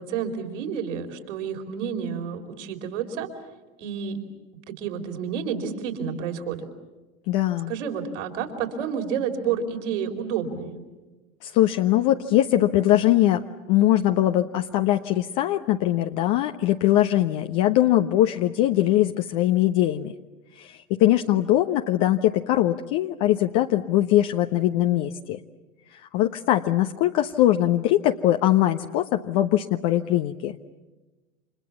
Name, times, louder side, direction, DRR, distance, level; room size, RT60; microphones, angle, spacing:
voice 1, 0.0-3.3 3.8-4.2 4.7-6.7 7.7-10.8, right 7 dB, 65° right, 4 dB, 4.5 m, -30 dB
voice 2, 7.3-7.7 11.4-20.1 20.5-25.4 25.9-30.6, left 13 dB, 50° left, 5 dB, 1.2 m, -21 dB
30.0 x 27.0 x 7.2 m, 1.2 s
hypercardioid pair, 90°, 39 cm